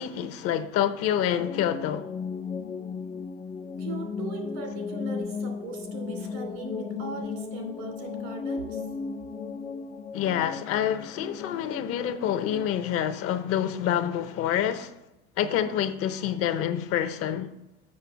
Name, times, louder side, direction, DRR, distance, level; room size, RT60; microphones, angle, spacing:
voice 1, 0.0-2.1 10.1-14.9 15.4-17.5, left 10 dB, 50° left, 0.8 m, -27 dB
sound 1, 1.4-12.7, left 5 dB, 15° left, 0.3 m, -35 dB
voice 2, 3.8-8.9, right 3 dB, 85° right, 2.8 m, -39 dB
7.7 x 5.9 x 5.8 m
cardioid pair, 135°, 29 cm